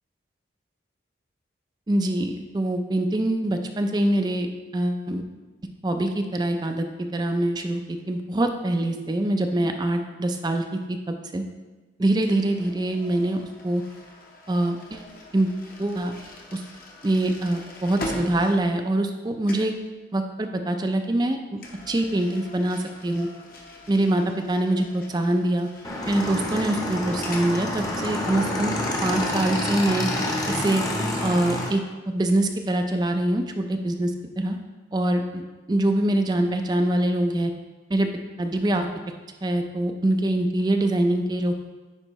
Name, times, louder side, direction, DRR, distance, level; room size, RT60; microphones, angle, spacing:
voice 1, 1.9-5.2 5.8-11.4 12.0-13.8 14.5-15.1 15.3-15.5 15.8-16.1 16.5-16.6 17.0-19.7 20.1-21.6 21.9-23.3 23.9-25.7 26.1-28.7 29.0-30.1 30.5-30.8 31.2-31.8 32.1-34.6 34.9-37.5 37.9-38.1 38.4-38.9 39.4-41.5, right 1 dB, 20° right, 5 dB, 0.4 m, -24 dB
sound 1, 12.2-19.2 19.4-19.8 21.6-27.5, left 1 dB, 50° left, 0.9 m, -42 dB
Motorcycle / Engine, 25.8-31.7, left 1 dB, 20° left, 0.8 m, -28 dB
9.8 x 4.4 x 3.0 m, 1.2 s
head